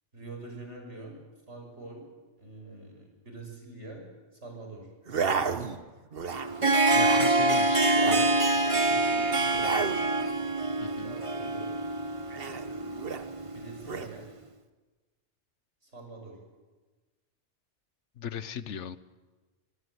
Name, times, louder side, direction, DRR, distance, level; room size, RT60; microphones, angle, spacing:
voice 1, 0.1-1.1 1.5-2.0 2.4-4.0 4.4-4.9 8.8-9.8 10.9-11.7 13.5-14.3 15.8-16.4, right 2 dB, 80° right, 2 dB, 6.2 m, -45 dB
sound 1, 5.1-5.8 6.1-6.5 6.8-7.3 7.9-8.3 9.5-10.0 12.3-13.3 13.8-14.1, right 5 dB, 55° right, 1.4 m, -32 dB
Harp, 6.3-14.1, right 2 dB, 30° right, 1.1 m, -26 dB
voice 2, 6.9-8.3 10.8-11.2 18.2-19.0, left 8 dB, 90° left, 15 dB, 1.3 m, -38 dB
25.5 x 20.5 x 7.9 m, 1.3 s
omnidirectional pair, 1.2 m